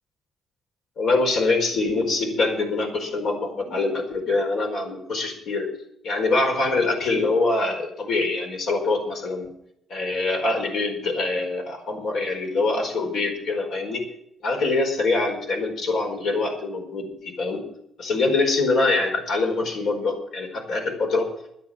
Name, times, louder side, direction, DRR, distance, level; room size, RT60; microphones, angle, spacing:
voice 1, 1.0-5.7 6.0-9.5 9.9-14.0 14.4-17.6 18.0-21.3, left 3 dB, 70° left, 3 dB, 4.7 m, -24 dB
12.0 x 10.5 x 7.4 m, 0.74 s
cardioid pair, 90°, 0 cm